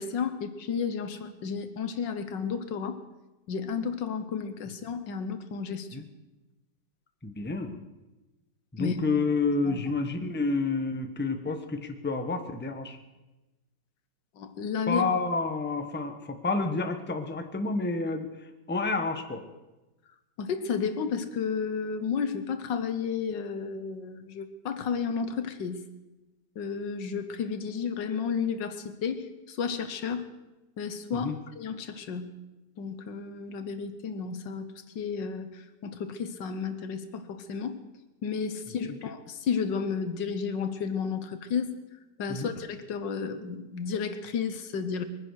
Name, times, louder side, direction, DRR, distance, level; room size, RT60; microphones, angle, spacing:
voice 1, 0.0-3.0 3.5-5.9 8.8-9.0 9.6-9.8 14.4-15.0 20.4-25.9 26.5-30.3 30.8-32.3 32.8-34.7 34.9-37.8 38.2-41.7 42.2-45.0, left 6 dB, 90° left, 10 dB, 1.8 m, -32 dB
voice 2, 7.2-7.8 8.7-13.0 14.9-18.3 18.7-19.4 31.1-31.4 42.3-42.5, left 3 dB, 10° left, 6 dB, 0.9 m, -29 dB
22.0 x 10.0 x 6.4 m, 1.1 s
omnidirectional pair, 1.9 m